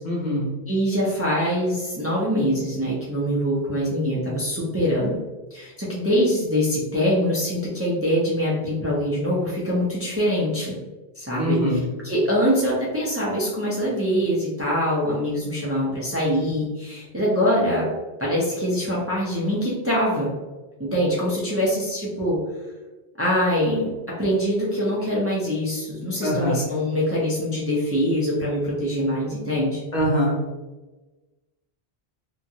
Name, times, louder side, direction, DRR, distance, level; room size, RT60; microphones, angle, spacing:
voice 1, 0.0-0.5 11.4-11.9 26.2-26.6 29.9-30.4, equal, 50° left, -3 dB, 0.7 m, -23 dB
voice 2, 0.7-5.2 5.5-10.7 11.2-11.8 12.0-17.9 18.2-20.3 20.9-22.4 23.2-23.9 24.2-29.8, equal, 15° right, -6 dB, 0.5 m, -23 dB
2.9 x 2.4 x 2.7 m, 1.2 s
omnidirectional pair, 1.0 m